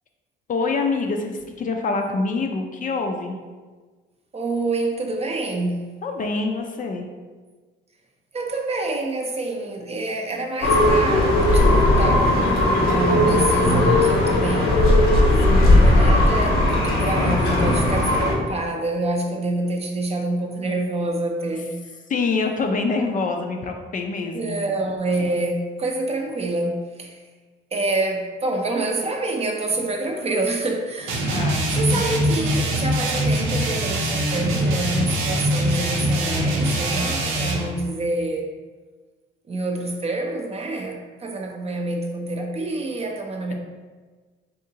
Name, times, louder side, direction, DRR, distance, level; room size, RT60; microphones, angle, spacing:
voice 1, 0.5-3.4 6.0-7.1 15.5-15.8 22.1-24.6 31.2-31.7 31.9-32.0, left 3 dB, 40° left, 3 dB, 0.4 m, -25 dB
voice 2, 4.3-5.9 8.3-14.8 15.6-21.8 24.3-27.2 27.7-31.5 31.8-38.5 39.5-43.5, right 2 dB, 30° right, 2 dB, 0.5 m, -27 dB
sound 1, 10.6-18.3, left 1 dB, 80° left, 0.9 m, -17 dB
sound 2, 31.1-37.7, right 1 dB, 85° right, 0.6 m, -23 dB
3.7 x 2.8 x 2.7 m, 1.4 s
cardioid pair, 90°, 20 cm